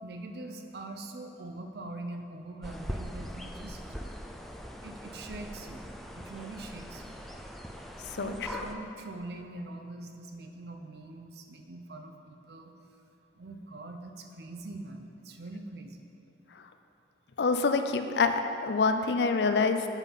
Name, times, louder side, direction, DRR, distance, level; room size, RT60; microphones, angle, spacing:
voice 1, 0.0-3.8 4.8-5.9 6.2-7.2 8.2-12.7 13.3-16.0, right 2 dB, 60° right, 5 dB, 0.6 m, -43 dB
sound 1, 2.6-8.8, equal, ahead, 0.4 m, -41 dB
voice 2, 17.4-19.9, left 4 dB, 70° left, 8 dB, 0.4 m, -26 dB
7.3 x 5.6 x 5.3 m, 2.7 s
head